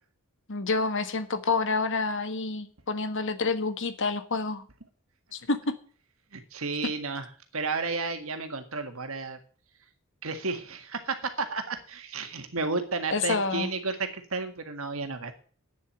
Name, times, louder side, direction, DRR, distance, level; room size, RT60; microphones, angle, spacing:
voice 1, 0.5-4.7 5.3-5.7 13.1-13.7, left 3 dB, 55° left, 10 dB, 1.4 m, -28 dB
voice 2, 6.3-7.3 7.5-9.4 10.2-15.3, right 4 dB, 65° right, 8 dB, 1.8 m, -32 dB
9.3 x 7.5 x 9.0 m, 0.42 s
head